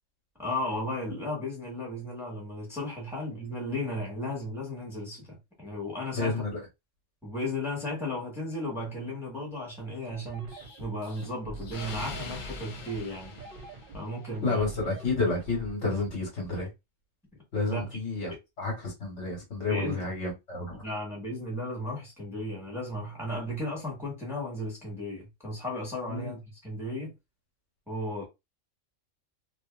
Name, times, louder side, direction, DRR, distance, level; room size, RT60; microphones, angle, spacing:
voice 1, 0.4-6.4 7.2-13.3 13.9-14.7 17.7-17.9 18.3-18.4 19.7-20.1 20.8-27.1 27.9-28.3, left 1 dB, ahead, 1.2 m, -35 dB
voice 2, 6.1-6.7 14.4-16.7 17.5-20.8 26.1-26.3, left 3 dB, 65° left, 1.5 m, -30 dB
sound 1, 10.1-16.1, right 3 dB, 50° right, 0.8 m, -44 dB
Explosion, 10.5-14.3, left 3 dB, 80° left, 1.1 m, -43 dB
2.8 x 2.6 x 2.3 m
omnidirectional pair, 1.3 m